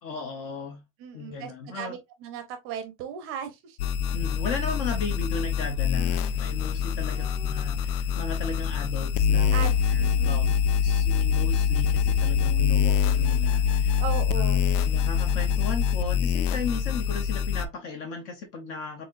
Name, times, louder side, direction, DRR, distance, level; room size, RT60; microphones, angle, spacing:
voice 1, 0.0-0.8 1.1-2.0 4.1-14.0 14.4-19.1, left 4 dB, 30° left, 0.6 m, -36 dB
voice 2, 1.0-3.9 7.0-7.7 9.5-10.4 14.0-14.6, right 8 dB, 25° right, 0.7 m, -37 dB
sound 1, 3.8-17.6, left 7 dB, 65° left, 0.6 m, -24 dB
4.2 x 3.7 x 2.4 m
supercardioid pair, 165°, 49 cm